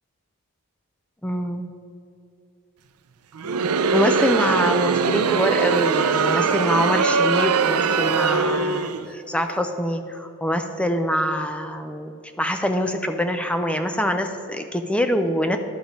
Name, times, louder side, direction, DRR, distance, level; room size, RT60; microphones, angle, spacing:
voice 1, 1.2-1.7 3.9-15.6, equal, 5° left, 7 dB, 0.4 m, -24 dB
Crowd, 3.4-9.1, right 5 dB, 85° right, 0.5 m, -21 dB
11.5 x 6.9 x 5.1 m, 2.7 s
head